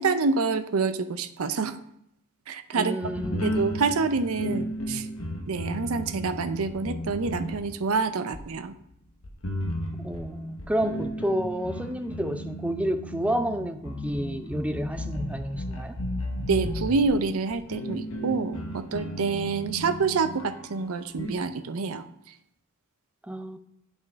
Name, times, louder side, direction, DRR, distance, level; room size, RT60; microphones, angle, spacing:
voice 1, 0.0-1.8 2.5-3.0 3.4-5.1 5.5-8.7 16.5-22.0, right 4 dB, 75° right, 11 dB, 0.6 m, -27 dB
voice 2, 2.7-3.5 10.0-16.0 23.3-23.6, equal, 5° right, 8 dB, 0.4 m, -30 dB
sound 1, 3.0-8.0 8.3-8.4 9.2-21.3, equal, 70° left, 1.0 m, -34 dB
8.9 x 5.3 x 3.5 m, 0.75 s
head